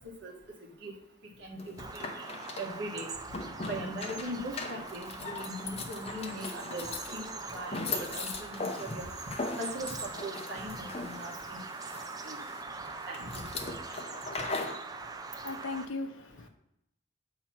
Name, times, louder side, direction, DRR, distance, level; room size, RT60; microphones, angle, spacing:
voice 1, 1.4-2.1 2.6-3.1 3.6-9.1 9.6-11.6 12.2-12.4 13.1-13.4, right 1 dB, 55° right, 0 dB, 1.4 m, -40 dB
sound 1, 1.6-14.8, left 3 dB, 30° left, 0.6 m, -40 dB
Bird vocalization bird call bird song, 1.8-15.8, right 4 dB, 20° right, 0.3 m, -42 dB
voice 2, 15.4-16.5, left 3 dB, 70° left, 9 dB, 0.6 m, -37 dB
7.8 x 2.9 x 5.8 m, 0.81 s
head